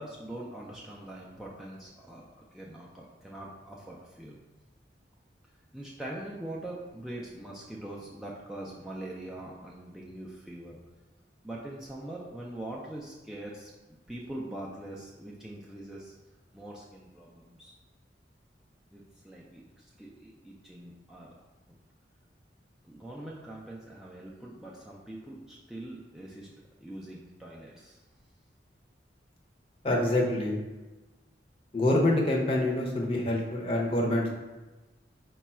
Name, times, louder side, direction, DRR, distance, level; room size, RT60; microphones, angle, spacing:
voice 1, 0.0-4.4 5.7-10.8 11.4-13.7 14.1-16.1 16.5-17.7 18.9-21.4 22.8-28.0, right 1 dB, 5° right, -5 dB, 0.4 m, -43 dB
voice 2, 29.8-30.6 31.7-34.3, left 1 dB, 30° left, -1 dB, 0.7 m, -26 dB
4.8 x 2.3 x 4.2 m, 1.2 s
head